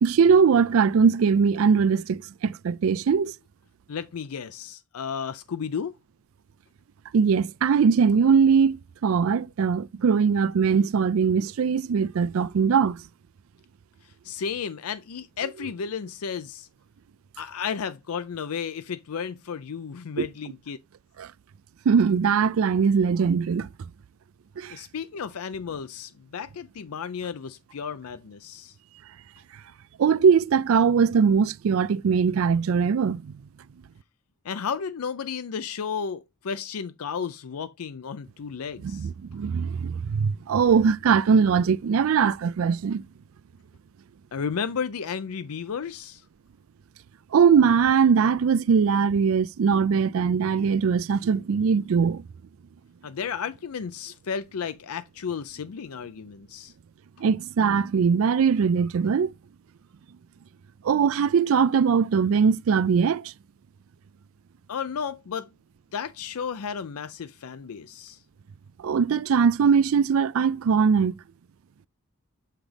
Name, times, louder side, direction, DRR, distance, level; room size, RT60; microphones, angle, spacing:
voice 1, 0.0-3.3 7.1-13.0 20.2-20.3 21.2-21.3 21.9-23.7 24.6-24.8 30.0-33.3 38.8-43.0 47.3-52.2 57.2-59.3 60.8-63.3 68.8-71.2, right 6 dB, 65° right, 0.4 m, -21 dB
voice 2, 3.9-5.9 14.2-16.7 17.4-20.8 24.7-28.7 34.4-39.1 44.3-46.2 53.0-56.7 64.7-65.5 65.9-68.2, left 6 dB, 80° left, 0.5 m, -33 dB
7.1 x 5.7 x 3.3 m
head